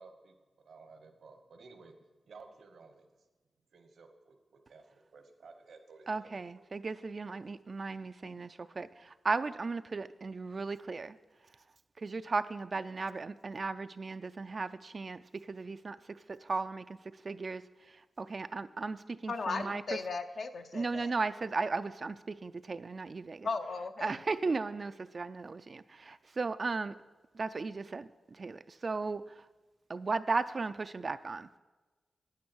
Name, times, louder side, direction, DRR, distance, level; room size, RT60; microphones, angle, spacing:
voice 1, 0.0-2.0 2.3-3.1 3.7-6.3, right 4 dB, 80° right, 7 dB, 1.1 m, -55 dB
voice 2, 6.1-11.2 12.0-19.8 20.7-23.5 24.0-26.9 27.3-29.5 29.9-31.6, right 4 dB, 40° right, 11 dB, 0.3 m, -36 dB
voice 3, 19.3-21.1 23.4-24.1, left 4 dB, 65° left, 6 dB, 0.6 m, -36 dB
9.5 x 9.3 x 6.2 m, 1.2 s
wide cardioid pair, 125°, 0 cm